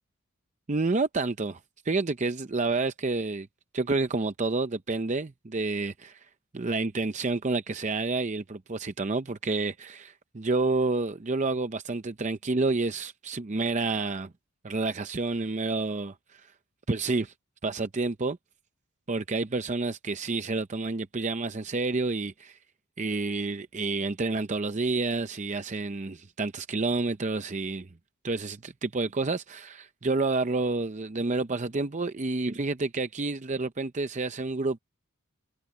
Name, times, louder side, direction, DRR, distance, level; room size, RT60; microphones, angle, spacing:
voice 1, 0.7-1.6 1.9-3.5 3.7-6.3 6.5-14.3 14.6-16.5 16.9-17.3 17.6-18.4 19.1-22.6 23.0-27.9 28.2-34.8, right 3 dB, 35° right, 0.6 m, -29 dB
head